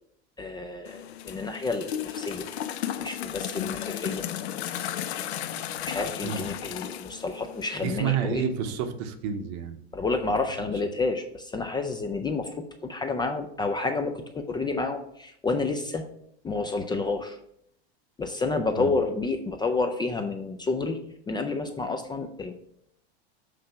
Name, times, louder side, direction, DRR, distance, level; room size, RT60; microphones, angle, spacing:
voice 1, 0.4-2.5 3.0-4.3 5.9-8.4 9.9-16.1 16.4-17.4 18.2-21.0 21.3-22.5, left 3 dB, 15° left, 5 dB, 0.4 m, -29 dB
sound 1, 0.8-8.0, left 11 dB, 80° left, 0.7 m, -34 dB
voice 2, 7.8-9.8 18.8-18.9, right 7 dB, 50° right, 8 dB, 0.9 m, -29 dB
7.5 x 3.3 x 5.6 m, 0.72 s
hypercardioid pair, 110°, 32 cm